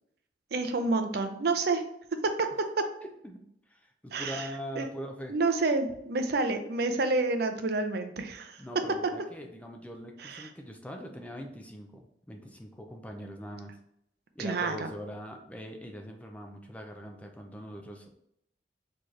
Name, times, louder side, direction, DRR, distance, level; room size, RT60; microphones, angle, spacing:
voice 1, 0.5-1.8 2.4-2.5 4.1-4.5 4.8-4.9 5.3-8.6 10.2-10.5 14.4-14.9, right 3 dB, 60° right, 7 dB, 0.6 m, -29 dB
voice 2, 3.7-5.3 8.6-13.7 14.4-18.1, equal, 10° left, 3 dB, 0.5 m, -42 dB
4.5 x 3.0 x 3.2 m, 0.75 s
head